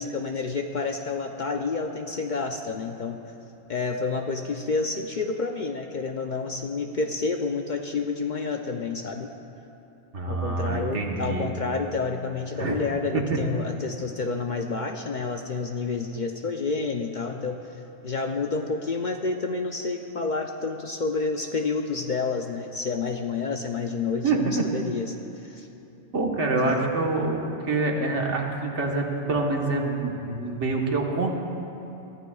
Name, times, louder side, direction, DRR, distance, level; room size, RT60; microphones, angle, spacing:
voice 1, 0.0-3.2 3.7-9.3 10.3-17.6 18.0-25.2 25.4-25.7 26.6-26.9, left 4 dB, 50° left, 4 dB, 0.6 m, -29 dB
voice 2, 10.1-11.5 12.6-12.8 13.1-13.2 24.2-24.6 26.1-31.3, right 3 dB, 75° right, 0 dB, 1.7 m, -26 dB
23.0 x 14.5 x 2.4 m, 2.9 s
omnidirectional pair, 1.2 m